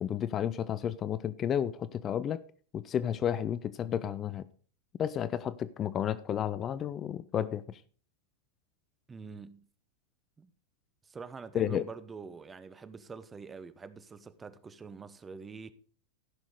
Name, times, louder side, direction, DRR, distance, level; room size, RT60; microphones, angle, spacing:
voice 1, 0.0-2.4 2.7-4.5 5.0-7.8 11.5-11.8, left 9 dB, 30° left, 0.5 m, -32 dB
voice 2, 9.1-9.7 10.4-10.5 11.0-15.7, right 5 dB, 15° right, 0.9 m, -45 dB
14.5 x 6.2 x 4.8 m
figure-of-eight pair, 90°, 0 cm